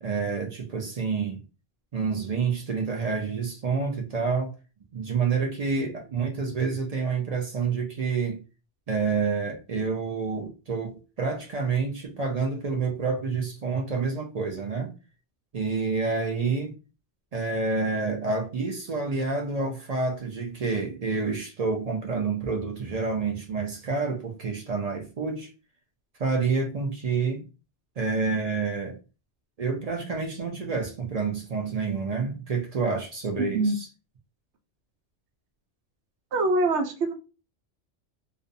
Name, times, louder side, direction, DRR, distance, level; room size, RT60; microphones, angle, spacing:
voice 1, 0.0-1.4 1.9-4.5 4.9-8.4 8.9-14.9 15.5-16.7 17.3-25.5 26.2-27.4 28.0-29.0 29.6-33.8, right 4 dB, 50° right, 0.5 m, -28 dB
voice 2, 36.3-37.1, right 2 dB, 75° right, 0.9 m, -24 dB
2.5 x 2.1 x 2.6 m
omnidirectional pair, 1.2 m